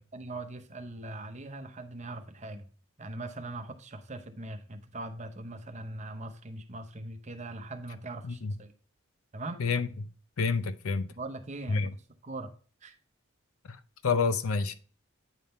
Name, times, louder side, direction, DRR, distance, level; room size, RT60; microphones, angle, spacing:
voice 1, 0.1-2.7 3.0-8.7 9.3-9.6 11.1-12.0 12.2-12.5 12.8-13.0, right 2 dB, 35° right, 0.7 m, -41 dB
voice 2, 8.2-8.5 9.6-10.1 10.4-11.1 11.7-11.9 13.7-13.8 14.0-14.7, left 4 dB, 85° left, 0.6 m, -28 dB
9.0 x 3.6 x 4.2 m
head